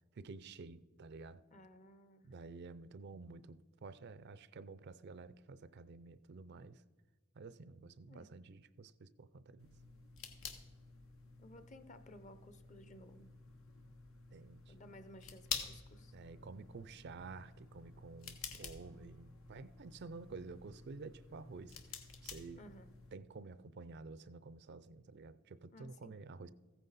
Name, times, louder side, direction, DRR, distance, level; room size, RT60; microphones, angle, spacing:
voice 1, 0.2-1.4 2.2-6.8 7.4-9.7 14.3-14.7 16.1-21.8 22.2-22.6 23.1-26.5, right 4 dB, 55° right, 0.4 m, -51 dB
voice 2, 1.5-2.3 8.1-8.3 11.4-13.3 14.7-16.2 22.6-22.9 25.7-26.1, left 1 dB, 35° left, 0.8 m, -57 dB
sound 1, 9.6-23.1, left 6 dB, 90° left, 1.2 m, -50 dB
14.5 x 9.3 x 4.1 m
head